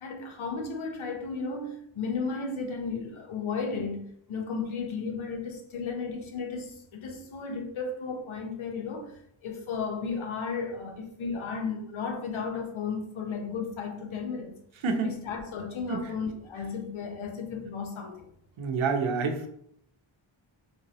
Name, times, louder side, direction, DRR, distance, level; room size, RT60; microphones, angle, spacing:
voice 1, 0.0-9.1 9.4-14.5 15.0-18.2, left 5 dB, 80° left, 0.8 m, -34 dB
voice 2, 14.8-15.1 15.9-16.0 18.6-19.5, right 4 dB, 80° right, 0.7 m, -27 dB
3.2 x 2.7 x 3.0 m
wide cardioid pair, 90°, 47 cm